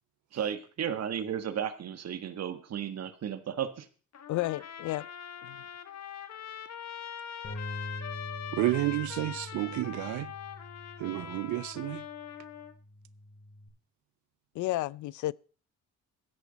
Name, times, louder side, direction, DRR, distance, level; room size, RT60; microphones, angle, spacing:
voice 1, 0.3-3.9, right 8 dB, 60° right, 1.6 m, -34 dB
Trumpet, 4.1-12.7, left 9 dB, 60° left, 1.4 m, -42 dB
voice 2, 4.3-5.1 5.4-5.6 14.5-15.3, left 17 dB, 75° left, 0.5 m, -32 dB
Bass guitar, 7.4-13.7, left 1 dB, 40° left, 6.0 m, -45 dB
voice 3, 8.5-10.3 11.0-12.0, right 18 dB, 75° right, 0.5 m, -31 dB
14.0 x 10.5 x 4.1 m
cardioid pair, 90°, 30 cm